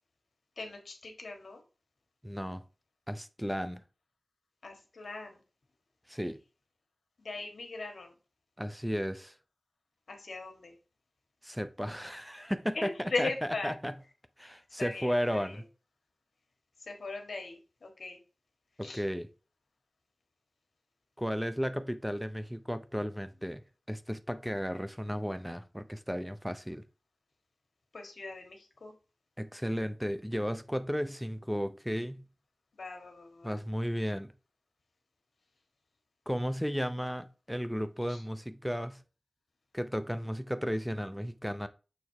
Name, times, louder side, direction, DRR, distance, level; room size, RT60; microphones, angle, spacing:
voice 1, 0.6-1.6 4.6-5.4 7.2-8.1 10.1-10.7 12.7-13.7 14.8-15.6 16.8-18.2 18.8-19.0 27.9-28.9 32.8-33.6 38.1-38.2, left 3 dB, 90° left, 1.5 m, -39 dB
voice 2, 2.2-2.6 3.1-3.8 6.1-6.4 8.6-9.3 11.4-13.3 13.6-13.9 14.4-15.6 18.8-19.3 21.2-23.6 23.9-26.8 29.4-32.2 33.4-34.3 36.3-39.0 39.7-41.7, equal, ahead, 0.6 m, -34 dB
6.6 x 3.5 x 4.6 m
cardioid pair, 45°, 0 cm